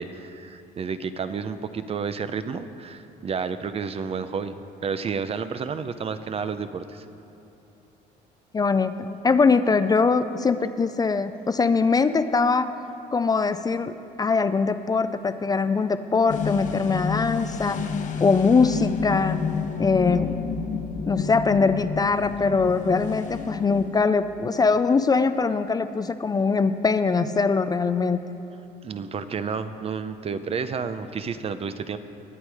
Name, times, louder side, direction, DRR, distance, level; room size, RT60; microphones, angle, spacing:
voice 1, 0.0-7.0 28.8-32.0, right 6 dB, 35° right, 11 dB, 0.6 m, -31 dB
voice 2, 8.5-12.7 13.1-17.8 18.2-19.4 19.8-20.4 21.1-28.2, left 4 dB, 25° left, 11 dB, 0.4 m, -22 dB
sound 1, 16.3-24.2, left 5 dB, 50° left, 0.9 m, -30 dB
19.5 x 8.2 x 4.8 m, 3.0 s
cardioid pair, 110°, 17 cm